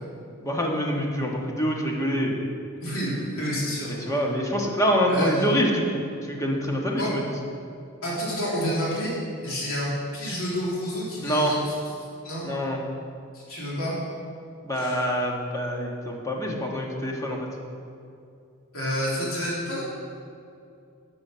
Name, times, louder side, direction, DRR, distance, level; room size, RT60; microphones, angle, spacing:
voice 1, 0.4-2.4 4.0-7.2 11.2-11.5 12.4-12.8 14.6-17.4, equal, 15° left, -1 dB, 1.5 m, -25 dB
voice 2, 2.8-3.9 5.1-5.5 7.0-7.1 8.0-9.1 9.4-11.7 12.2-12.5 13.3-13.9 14.7-15.0 18.7-19.8, equal, 70° left, -6 dB, 3.1 m, -29 dB
12.5 x 8.0 x 5.7 m, 2.5 s
head